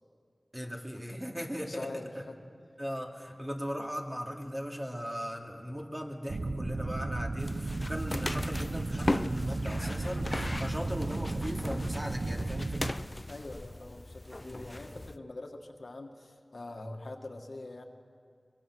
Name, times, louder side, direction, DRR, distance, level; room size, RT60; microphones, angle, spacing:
voice 1, 0.5-1.9 2.1-2.2 2.8-13.0 14.4-15.0, equal, 15° right, 0 dB, 2.7 m, -38 dB
voice 2, 1.6-2.3 13.3-17.8, left 2 dB, 65° left, 3 dB, 1.8 m, -43 dB
sound 1, 6.3-12.9, right 2 dB, 60° right, 0.8 m, -34 dB
sound 2, 7.4-15.2, left 1 dB, 30° left, 0.5 m, -38 dB
23.5 x 23.0 x 6.3 m, 2.3 s
wide cardioid pair, 50°, 0 cm